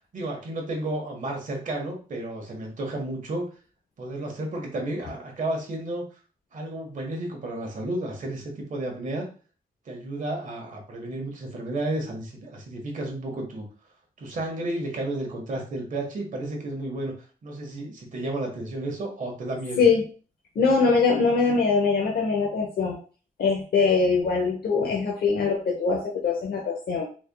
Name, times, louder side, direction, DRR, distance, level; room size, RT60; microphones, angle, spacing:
voice 1, 0.1-3.5 4.0-6.1 6.5-9.3 9.8-13.7 14.2-17.1 17.4-19.8, right 1 dB, 55° right, 1 dB, 1.3 m, -32 dB
voice 2, 20.6-23.0 23.4-27.1, left 4 dB, 90° left, -1 dB, 0.8 m, -22 dB
4.1 x 3.4 x 2.3 m, 0.38 s
wide cardioid pair, 150°, 15 cm